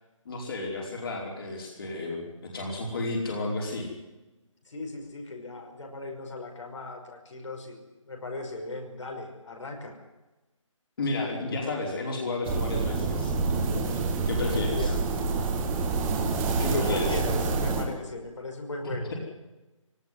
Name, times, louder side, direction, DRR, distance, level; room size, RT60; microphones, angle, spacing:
voice 1, 0.2-3.9 11.0-13.8 14.3-14.9 16.6-17.2 18.8-18.9, left 2 dB, 45° left, -1 dB, 5.0 m, -32 dB
voice 2, 4.7-9.9 14.7-15.2 16.7-19.1, left 2 dB, 65° left, 2 dB, 5.6 m, -37 dB
sound 1, 12.4-17.8, right 4 dB, 15° right, 2.3 m, -27 dB
19.5 x 18.5 x 9.7 m, 1.1 s
figure-of-eight pair, 160°, 17 cm